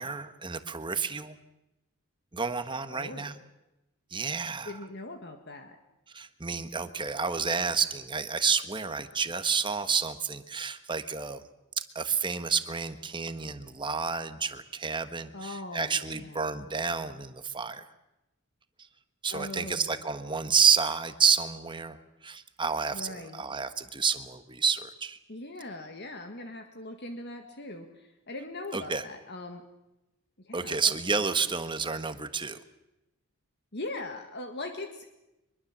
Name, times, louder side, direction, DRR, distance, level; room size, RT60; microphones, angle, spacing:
voice 1, 0.0-1.4 2.3-3.3 4.1-4.8 6.1-11.4 11.9-17.8 19.2-22.0 22.2-25.2 28.7-29.0 30.5-32.6, right 5 dB, 20° right, 10 dB, 1.3 m, -29 dB
voice 2, 2.9-3.4 4.7-5.8 15.3-16.5 19.3-19.9 22.9-23.4 25.3-29.6 30.4-30.9 33.7-35.1, left 2 dB, 50° left, 5 dB, 1.8 m, -40 dB
24.0 x 22.5 x 7.4 m, 0.94 s
head